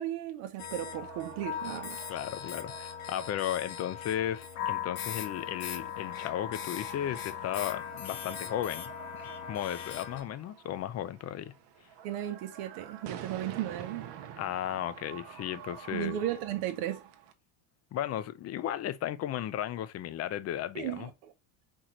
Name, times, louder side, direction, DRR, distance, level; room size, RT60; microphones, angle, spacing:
voice 1, 0.0-2.0 12.0-14.1 15.9-17.0 20.7-21.3, right 12 dB, 85° right, 0.9 m, -35 dB
sound 1, 0.6-10.2, left 9 dB, 70° left, 1.1 m, -39 dB
sound 2, 0.7-17.3, right 9 dB, 60° right, 0.8 m, -49 dB
voice 2, 2.1-8.9 9.5-11.5 14.4-16.2 17.9-21.1, left 11 dB, 35° left, 0.4 m, -35 dB
4.4 x 3.7 x 3.0 m
cardioid pair, 125°, 48 cm